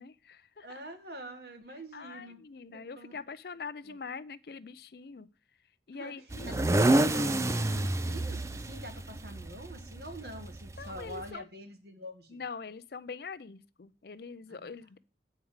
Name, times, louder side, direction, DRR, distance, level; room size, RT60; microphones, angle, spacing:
voice 1, 0.0-0.8 1.9-5.3 5.9-6.5 10.8-11.5 12.3-15.0, left 5 dB, 60° left, 15 dB, 0.5 m, -43 dB
voice 2, 0.6-2.4 2.7-3.1 3.8-4.0 5.9-12.4, right 1 dB, 65° right, 6 dB, 1.8 m, -46 dB
sound 1, 6.3-11.3, right 1 dB, 15° right, 0.4 m, -29 dB
8.4 x 4.7 x 7.2 m, 0.35 s
head